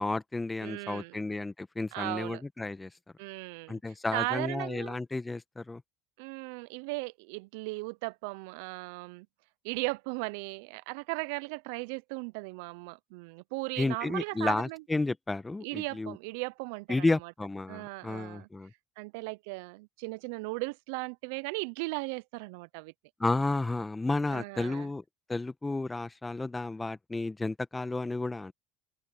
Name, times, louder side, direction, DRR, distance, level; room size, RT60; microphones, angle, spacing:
voice 1, 0.0-2.9 3.7-5.8 13.8-16.1 16.9-18.7 23.2-25.0 25.3-28.5, left 2 dB, 15° left, 1.4 m, -32 dB
voice 2, 0.6-1.2 1.9-2.4 3.2-5.0 6.2-9.3 9.6-14.8 15.6-17.3 17.7-18.5 19.0-22.9 24.3-24.9, right 27 dB, 75° right, 0.6 m, -37 dB
open air
hypercardioid pair, 75°, 0 cm